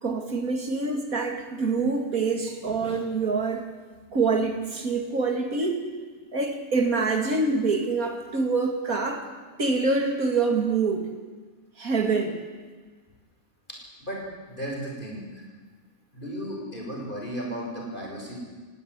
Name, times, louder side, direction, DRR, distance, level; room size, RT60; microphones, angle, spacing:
voice 1, 0.0-3.7 4.1-5.8 6.3-9.3 9.6-11.1 11.8-12.4, right 4 dB, 75° right, 4 dB, 3.0 m, -25 dB
voice 2, 14.0-15.4 16.1-18.4, equal, 35° left, -1 dB, 6.6 m, -35 dB
19.5 x 16.5 x 9.7 m, 1.4 s
omnidirectional pair, 1.5 m